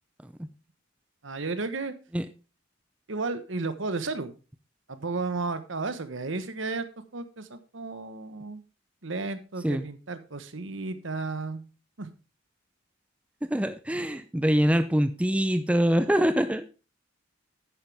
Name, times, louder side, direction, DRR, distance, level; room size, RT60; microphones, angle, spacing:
voice 1, 1.2-1.9 3.1-4.3 4.9-6.9 7.1-8.6 9.0-11.6 12.0-12.1, right 3 dB, 65° right, 11 dB, 1.2 m, -33 dB
voice 2, 13.4-16.6, equal, 5° right, 11 dB, 0.5 m, -24 dB
11.0 x 9.3 x 3.5 m, 0.32 s
head